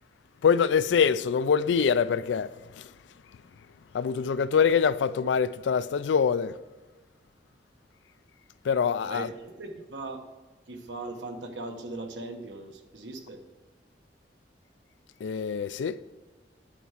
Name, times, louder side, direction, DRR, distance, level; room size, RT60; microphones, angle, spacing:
voice 1, 0.4-2.5 3.9-6.5 8.7-9.3 15.2-16.0, left 6 dB, 80° left, 0.3 m, -24 dB
voice 2, 9.0-10.2 10.7-13.4, right 2 dB, 85° right, 1.1 m, -39 dB
10.0 x 4.6 x 5.7 m
head